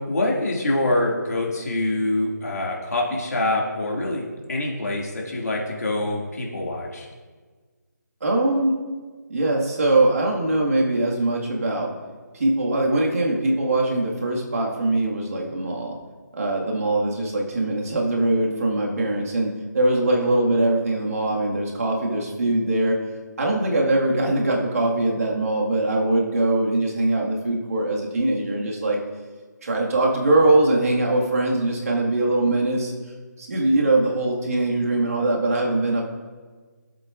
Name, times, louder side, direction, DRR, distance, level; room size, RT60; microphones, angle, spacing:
voice 1, 0.0-7.1, left 2 dB, 60° left, -2 dB, 2.2 m, -25 dB
voice 2, 8.2-8.8 9.3-11.9 12.3-16.0 16.3-23.0 23.4-29.0 29.6-32.9 33.4-36.0, right 2 dB, 50° right, -1 dB, 1.8 m, -22 dB
16.5 x 7.8 x 2.5 m, 1.4 s
figure-of-eight pair, 165°, 10 cm